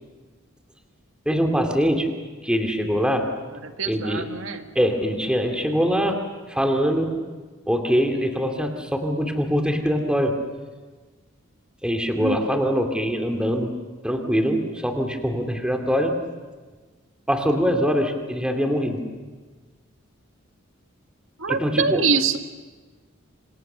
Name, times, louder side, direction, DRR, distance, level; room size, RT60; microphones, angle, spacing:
voice 1, 1.3-2.1 2.4-3.3 3.9-4.3 4.7-7.2 7.7-10.4 11.8-13.7 14.0-16.2 17.3-19.0 21.5-22.0, equal, 5° right, 4 dB, 2.5 m, -23 dB
voice 2, 3.5-4.7 12.2-12.4 21.4-22.4, right 5 dB, 65° right, 6 dB, 1.8 m, -24 dB
27.5 x 26.0 x 6.8 m, 1.4 s
head